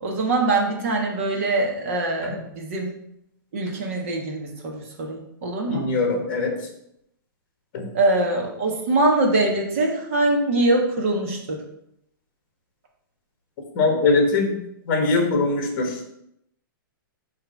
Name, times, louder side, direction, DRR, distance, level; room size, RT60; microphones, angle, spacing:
voice 1, 0.0-2.9 3.5-5.8 7.9-11.6, right 2 dB, 40° right, 1 dB, 1.3 m, -23 dB
voice 2, 5.7-6.5 7.7-7.8 13.7-14.5 14.9-15.9, left 3 dB, 30° left, 2 dB, 1.5 m, -21 dB
6.3 x 3.3 x 5.8 m, 0.78 s
hypercardioid pair, 180°, 12 cm